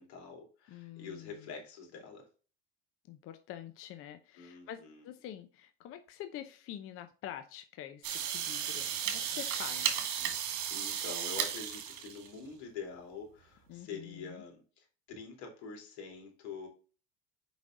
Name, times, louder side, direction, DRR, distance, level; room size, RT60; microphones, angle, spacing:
voice 1, 0.0-2.3 4.4-5.1 10.7-16.7, left 5 dB, 85° left, 2 dB, 3.3 m, -46 dB
voice 2, 0.7-1.3 3.1-10.1 13.7-14.4, left 11 dB, 45° left, 8 dB, 0.7 m, -46 dB
sound 1, 8.0-12.4, right 9 dB, 60° right, 2.1 m, -34 dB
6.1 x 5.2 x 3.8 m, 0.36 s
supercardioid pair, 125°, 32 cm